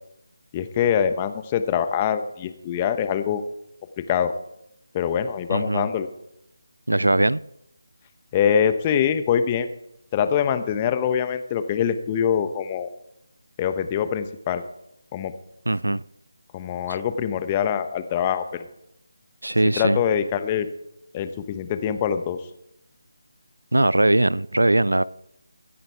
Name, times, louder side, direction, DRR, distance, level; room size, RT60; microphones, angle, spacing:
voice 1, 0.5-3.4 4.0-4.3 4.9-6.1 8.3-9.7 10.1-12.9 13.6-14.6 15.1-15.3 16.5-18.6 19.8-20.7 21.1-22.4, left 8 dB, 20° left, 1.1 m, -24 dB
voice 2, 5.5-5.9 6.9-7.4 15.7-16.0 19.4-20.0 23.7-25.0, right 1 dB, 80° right, 0.5 m, -20 dB
25.0 x 10.5 x 3.5 m
figure-of-eight pair, 155°, 0 cm